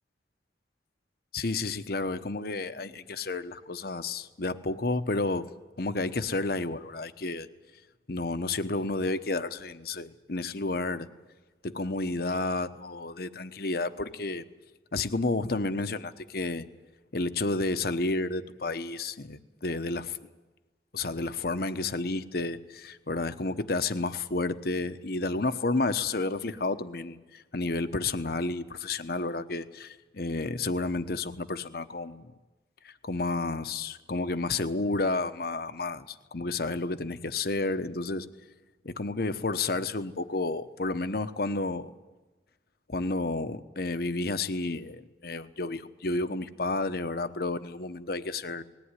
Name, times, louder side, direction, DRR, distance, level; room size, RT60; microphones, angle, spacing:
voice 1, 1.3-5.4 5.8-7.5 8.1-11.1 11.6-14.4 14.9-16.6 17.1-20.2 20.9-32.3 32.8-38.3 38.8-41.9 42.9-48.6, left 3 dB, 60° left, 11 dB, 1.0 m, -31 dB
20.0 x 17.0 x 9.8 m, 1.2 s
head